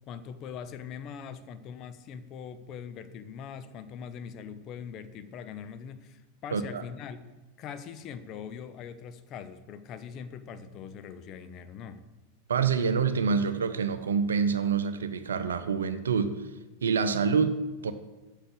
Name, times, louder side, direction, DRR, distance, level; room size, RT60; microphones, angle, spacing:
voice 1, 0.1-7.2 7.6-12.1, left 7 dB, 35° left, 11 dB, 0.7 m, -42 dB
voice 2, 6.5-6.8 12.5-16.4 16.8-17.9, right 5 dB, 70° right, 11 dB, 0.7 m, -27 dB
7.8 x 6.6 x 7.9 m, 1.1 s
figure-of-eight pair, 90°, 0 cm